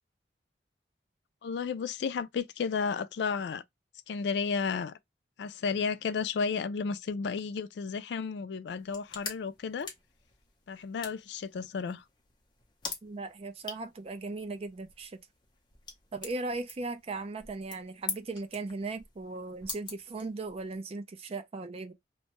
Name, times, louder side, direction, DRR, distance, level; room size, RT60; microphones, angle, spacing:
voice 1, 1.4-3.6 4.1-4.9 5.4-9.9 10.7-12.0, left 5 dB, 70° left, 0.3 m, -33 dB
sound 1, 8.7-20.8, left 5 dB, 25° left, 0.7 m, -45 dB
voice 2, 13.0-15.2 16.1-21.9, right 3 dB, 35° right, 0.4 m, -38 dB
2.6 x 2.2 x 2.9 m
head